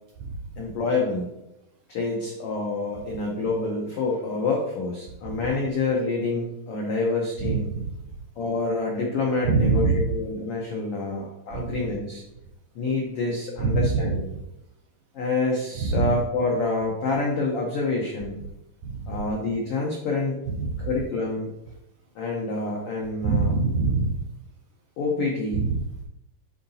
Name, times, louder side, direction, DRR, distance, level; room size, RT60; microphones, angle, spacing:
voice 1, 0.6-1.3 1.9-7.7 8.4-12.2 12.7-14.3 15.1-18.4 19.1-20.4 20.8-21.5 22.1-23.5 25.0-25.7, left 3 dB, 85° left, -2 dB, 1.3 m, -27 dB
voice 2, 7.4-7.9 9.4-10.1 11.5-11.8 13.6-14.2 15.8-16.1 18.8-19.2 20.6-20.9 23.2-24.2 25.5-26.0, right 4 dB, 85° right, 0 dB, 1.6 m, -24 dB
9.7 x 3.9 x 2.8 m, 0.86 s
omnidirectional pair, 3.9 m